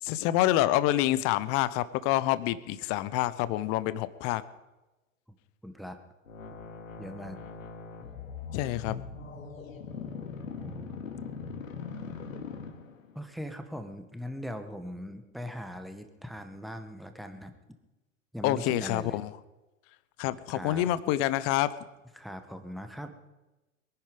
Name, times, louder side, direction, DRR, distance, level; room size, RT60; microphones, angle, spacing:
voice 1, 0.0-4.4 8.5-9.0 18.4-19.3 20.2-21.7, left 14 dB, 35° left, 16 dB, 0.8 m, -27 dB
voice 2, 5.6-6.0 7.0-7.4 10.5-11.1 13.1-17.5 18.3-19.2 20.5-20.9 22.1-23.1, equal, ahead, 7 dB, 1.3 m, -40 dB
sound 1, 6.3-13.2, left 5 dB, 75° left, 2.4 m, -41 dB
22.5 x 10.5 x 5.3 m, 1.1 s
figure-of-eight pair, 100°, 40 cm